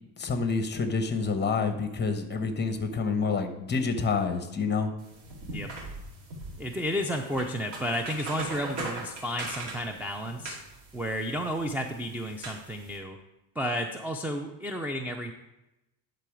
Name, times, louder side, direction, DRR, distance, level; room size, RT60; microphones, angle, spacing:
voice 1, 0.2-4.9, left 4 dB, 25° left, 7 dB, 0.9 m, -28 dB
sound 1, 5.0-13.0, right 2 dB, 90° right, 2.2 m, -41 dB
voice 2, 6.6-10.6 10.9-13.2 13.6-15.3, equal, 5° right, 4 dB, 0.3 m, -32 dB
10.5 x 3.9 x 4.9 m, 0.93 s
cardioid pair, 120°, 45 cm